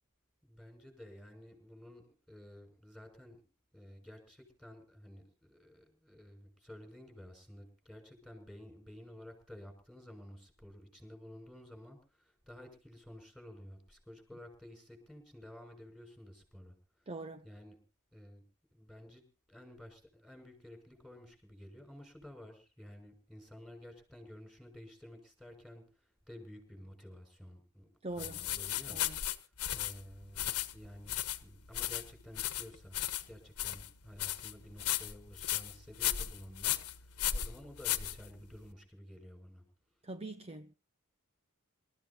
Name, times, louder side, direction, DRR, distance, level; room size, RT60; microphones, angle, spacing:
voice 1, 0.4-3.4 3.7-16.7 17.0-17.1 17.4-17.8 18.1-18.4 18.7-27.9 28.2-29.4 29.7-33.0 33.3-39.6, left 1 dB, ahead, 6.3 m, -52 dB
voice 2, 17.1-17.4 28.0-28.4 28.9-29.2 40.0-40.7, right 2 dB, 25° right, 0.7 m, -43 dB
sound 1, 28.2-38.7, left 12 dB, 90° left, 1.3 m, -36 dB
27.5 x 14.0 x 2.9 m
head